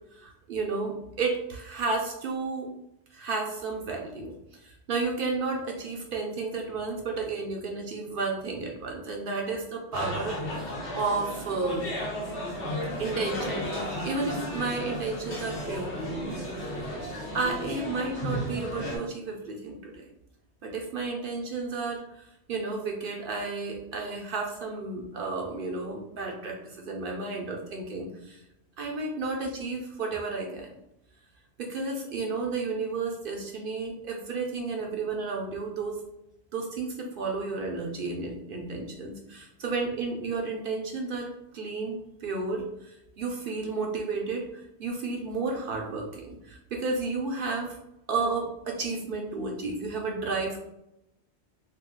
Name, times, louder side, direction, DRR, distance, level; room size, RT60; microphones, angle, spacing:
voice 1, 0.1-2.7 3.1-11.9 13.0-16.4 17.3-20.1 20.6-28.4 28.8-30.7 31.6-36.0 36.5-41.3 41.5-44.4 44.8-47.8 48.1-50.6, right 3 dB, 60° right, 0 dB, 0.6 m, -32 dB
sound 1, 9.9-19.0, equal, 90° left, 1.2 m, -34 dB
2.7 x 2.3 x 3.6 m, 0.83 s
omnidirectional pair, 1.1 m